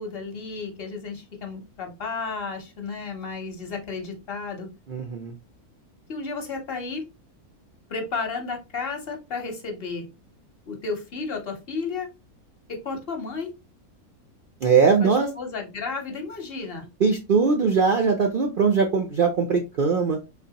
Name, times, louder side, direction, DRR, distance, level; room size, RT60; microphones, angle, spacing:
voice 1, 0.0-4.7 6.1-7.0 7.9-10.1 10.7-12.1 12.7-13.5 15.0-16.8, left 4 dB, 45° left, 4 dB, 1.0 m, -33 dB
voice 2, 4.9-5.3 14.6-15.3 17.0-20.2, right 5 dB, 65° right, 4 dB, 0.5 m, -21 dB
4.1 x 3.3 x 2.8 m, 0.27 s
omnidirectional pair, 1.5 m